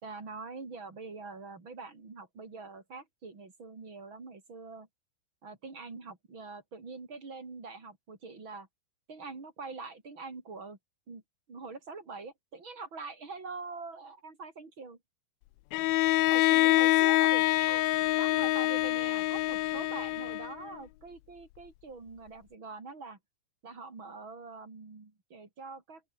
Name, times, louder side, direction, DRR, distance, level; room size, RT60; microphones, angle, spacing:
voice 1, 0.0-4.9 5.4-8.7 9.1-10.8 11.1-11.2 11.5-15.0 16.3-17.9 18.2-23.2 23.6-26.0, right 4 dB, 25° right, 4.4 m, -44 dB
Bowed string instrument, 15.7-20.7, left 18 dB, 80° left, 3.2 m, -26 dB
open air
omnidirectional pair, 5.5 m